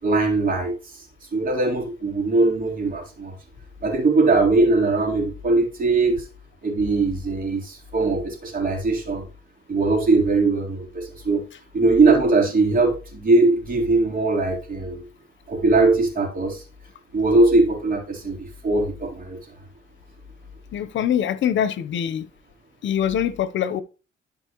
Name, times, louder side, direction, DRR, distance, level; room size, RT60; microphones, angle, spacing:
voice 1, 0.0-1.0 1.3-3.4 3.8-6.3 6.6-9.2 9.7-11.4 11.7-15.0 15.5-16.6 17.1-19.4, right 3 dB, 45° right, 3.7 m, -20 dB
voice 2, 20.7-22.3 22.8-23.8, left 9 dB, 70° left, 0.8 m, -23 dB
13.0 x 5.2 x 3.0 m
cardioid pair, 90°, 20 cm